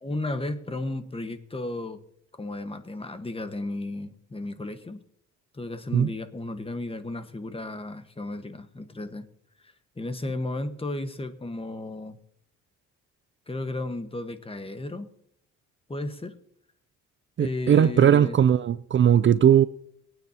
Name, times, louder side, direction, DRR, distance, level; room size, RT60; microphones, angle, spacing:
voice 1, 0.0-2.0 2.3-5.0 5.5-9.2 10.0-12.2 13.5-15.1 15.9-16.4 17.4-18.4, left 2 dB, 20° left, 1.4 m, -34 dB
voice 2, 17.4-19.6, right 9 dB, 40° right, 0.5 m, -19 dB
23.0 x 9.3 x 2.9 m
cardioid pair, 90°, 30 cm